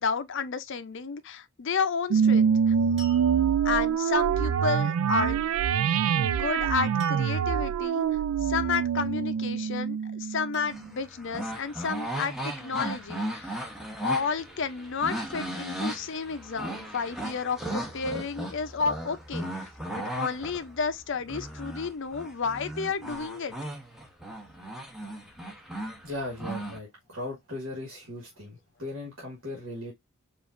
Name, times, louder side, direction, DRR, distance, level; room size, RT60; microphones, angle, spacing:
voice 1, 0.0-2.7 3.6-5.5 6.1-8.1 8.4-13.7 14.0-19.7 20.0-23.6, left 5 dB, 55° left, 0.5 m, -31 dB
sound 1, 2.1-10.9, right 7 dB, 80° right, 0.3 m, -25 dB
sound 2, 3.0-3.9 7.0-7.6 8.9-9.5 10.5-11.3 12.3-13.2, left 1 dB, 30° right, 2.3 m, -50 dB
sound 3, 10.7-26.8, right 1 dB, ahead, 0.8 m, -36 dB
voice 2, 26.0-29.9, left 1 dB, 65° right, 1.5 m, -38 dB
4.9 x 2.5 x 2.5 m
head